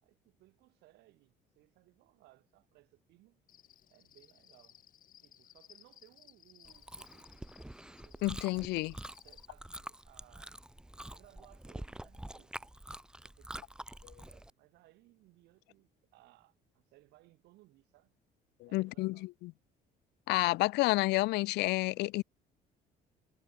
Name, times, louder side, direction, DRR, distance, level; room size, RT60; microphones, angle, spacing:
voice 1, 0.0-3.4 3.9-4.8 5.2-8.5 9.2-10.5 11.1-12.8 13.2-18.1 18.7-19.3, right 19 dB, 85° right, 3.0 m, -64 dB
Cricket, 3.5-9.5, left 10 dB, 55° left, 3.3 m, -60 dB
Chewing mastication, 6.6-14.5, right 1 dB, 5° right, 0.8 m, -47 dB
voice 2, 8.2-8.9 18.6-19.5 20.3-22.2, left 21 dB, 85° left, 0.4 m, -30 dB
cardioid pair, 110°, 17 cm